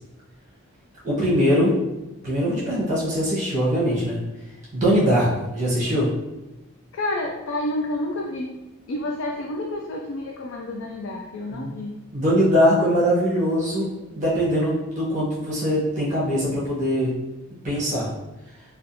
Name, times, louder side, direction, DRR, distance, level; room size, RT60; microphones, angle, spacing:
voice 1, 1.0-1.7 2.2-4.2 4.7-5.3 5.5-6.1 11.5-11.7 12.1-13.9 14.2-17.1 17.6-18.1, equal, 35° right, -8 dB, 1.0 m, -21 dB
voice 2, 4.8-5.2 6.9-8.5 8.9-12.0, left 1 dB, 65° left, 0 dB, 0.3 m, -29 dB
3.4 x 2.4 x 2.6 m, 1.0 s
head